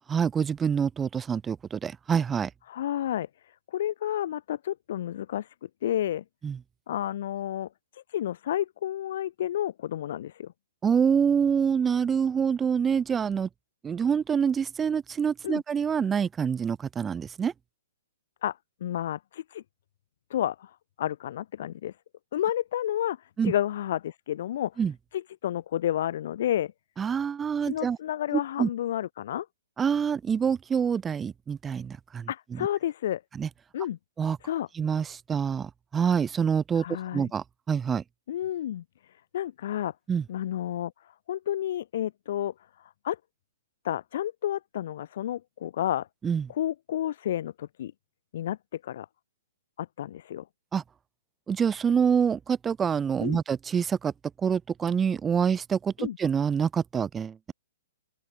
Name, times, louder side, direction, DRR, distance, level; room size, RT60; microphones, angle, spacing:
voice 1, 0.1-2.5 6.4-6.6 10.8-13.5 13.8-17.5 23.4-23.5 24.8-24.9 27.0-28.0 28.3-28.7 29.8-32.3 33.4-33.5 34.2-34.4 34.8-36.8 37.1-38.0 40.1-40.2 46.2-46.5 50.7-50.8 51.5-54.1 54.4-57.5, right 7 dB, 15° right, 0.5 m, -26 dB
voice 2, 2.7-3.3 3.7-6.2 6.9-10.5 15.4-15.6 18.4-19.6 20.3-21.9 22.3-24.8 25.1-26.7 27.6-29.5 32.3-33.2 33.7-34.0 34.4-34.7 36.7-37.3 38.3-38.8 39.3-39.9 40.3-40.9 41.3-42.5 42.8-43.2 43.8-46.1 46.5-47.9 48.3-49.1 49.8-50.4 53.2-53.4 56.0-56.2, left 11 dB, 50° left, 1.2 m, -31 dB
open air
figure-of-eight pair, 120°, 0 cm